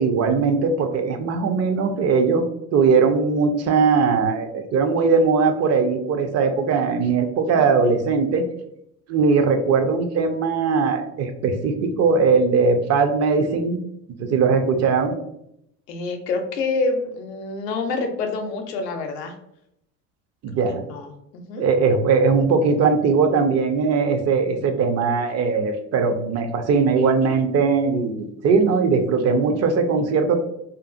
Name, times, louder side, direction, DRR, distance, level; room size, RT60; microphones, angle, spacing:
voice 1, 0.0-2.4 2.7-8.5 9.1-13.8 14.2-15.2 20.4-20.8 21.6-30.4, right 5 dB, 35° right, 6 dB, 0.4 m, -20 dB
voice 2, 15.9-19.3 20.7-21.6, left 3 dB, 85° left, 5 dB, 0.6 m, -27 dB
2.6 x 2.3 x 2.4 m, 0.78 s
hypercardioid pair, 70°, 48 cm